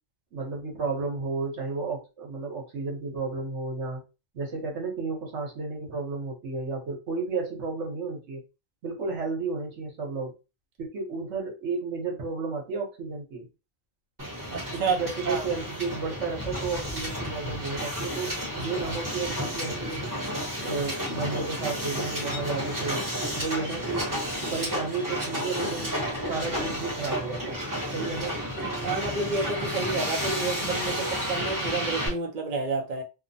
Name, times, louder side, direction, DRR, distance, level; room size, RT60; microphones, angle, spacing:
voice 1, 0.3-4.0 4.3-8.4 8.8-10.4 10.8-13.5 14.7-20.0 20.6-23.1 23.3-24.1 24.5-27.7 27.9-28.4, right 4 dB, 65° right, 1.2 m, -32 dB
Hiss, 14.2-32.1, equal, 20° right, 0.8 m, -32 dB
voice 2, 14.5-15.0 15.2-15.5 28.8-33.0, right 3 dB, 50° right, 0.6 m, -29 dB
2.9 x 2.1 x 2.6 m
omnidirectional pair, 1.3 m